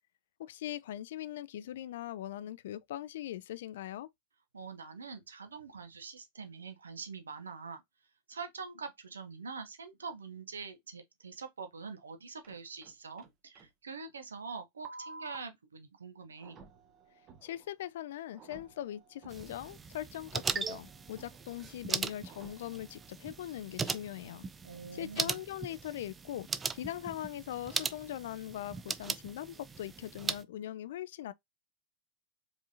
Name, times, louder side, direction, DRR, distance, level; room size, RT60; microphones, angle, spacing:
voice 1, 0.4-4.1 17.4-24.4 24.9-26.5 26.7-31.3, left 12 dB, 55° left, 0.3 m, -41 dB
voice 2, 4.5-7.8 8.3-16.6 24.6-25.4, right 5 dB, 70° right, 0.8 m, -44 dB
sound 1, 12.4-13.3 13.6-13.7 14.9-15.4 16.4-17.7 18.3-19.6 20.3-21.6 22.2-23.1, right 3 dB, 30° right, 0.9 m, -52 dB
sound 2, 19.3-30.4, right 5 dB, 15° right, 0.4 m, -39 dB
4.9 x 3.6 x 2.7 m
figure-of-eight pair, 90°, 0 cm